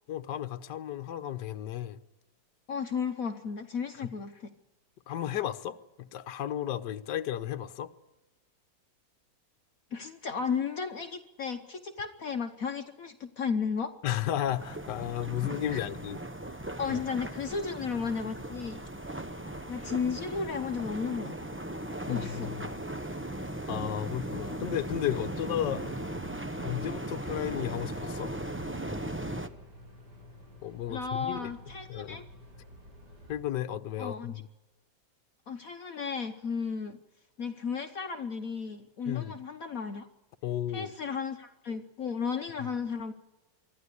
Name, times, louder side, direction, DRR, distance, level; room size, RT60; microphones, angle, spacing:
voice 1, 0.1-2.0 5.1-7.9 14.0-16.2 16.9-17.0 22.1-22.7 23.7-25.8 26.6-28.3 30.6-31.5 31.9-32.2 33.3-34.5 39.1-39.3 40.4-40.9 42.6-42.7, left 11 dB, 70° left, 1.5 m, -33 dB
voice 2, 2.7-4.5 9.9-13.9 15.7-15.8 16.8-18.8 19.7-21.4 22.1-22.5 30.9-32.2 34.0-34.3 35.5-37.0 37.4-40.1 40.7-43.1, left 5 dB, 55° left, 1.3 m, -34 dB
sound 1, 14.4-29.5, right 1 dB, 10° right, 0.5 m, -38 dB
sound 2, 24.2-33.4, equal, 65° right, 5.2 m, -51 dB
24.5 x 14.0 x 9.9 m
omnidirectional pair, 2.0 m